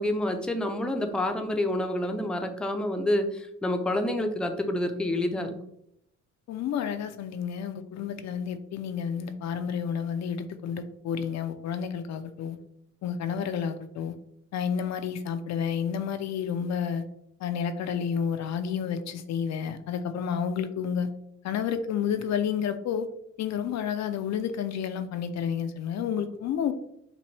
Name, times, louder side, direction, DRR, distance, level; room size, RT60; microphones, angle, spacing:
voice 1, 0.0-5.5, left 1 dB, 5° left, 5 dB, 0.5 m, -28 dB
voice 2, 6.5-12.6 13.0-14.1 14.5-17.1 17.4-21.1 21.4-23.1 23.4-26.7, left 7 dB, 65° left, 9 dB, 0.5 m, -30 dB
5.9 x 2.2 x 3.1 m, 0.74 s
cardioid pair, 90°, 30 cm